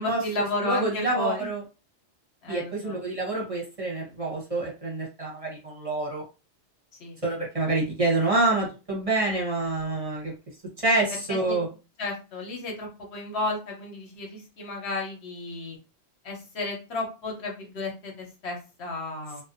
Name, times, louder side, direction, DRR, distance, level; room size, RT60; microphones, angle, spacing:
voice 1, 0.0-1.5 2.4-3.0 7.0-7.2 11.1-11.6 12.0-15.8 16.2-19.4, left 2 dB, 75° left, 0 dB, 1.1 m, -33 dB
voice 2, 0.6-1.6 2.5-6.2 7.2-10.3 10.8-11.7, right 2 dB, 35° right, -3 dB, 0.8 m, -27 dB
2.5 x 2.2 x 2.5 m, 0.31 s
omnidirectional pair, 1.1 m